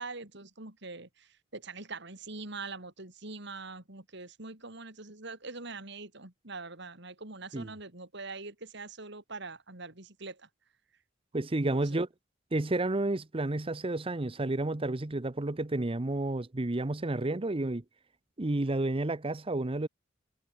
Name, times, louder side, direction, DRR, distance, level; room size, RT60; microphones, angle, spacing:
voice 1, 0.0-10.5 11.7-12.0, right 3 dB, 65° right, 4.3 m, -43 dB
voice 2, 11.3-12.1 12.5-17.8 18.4-19.9, right 2 dB, 30° right, 0.8 m, -31 dB
head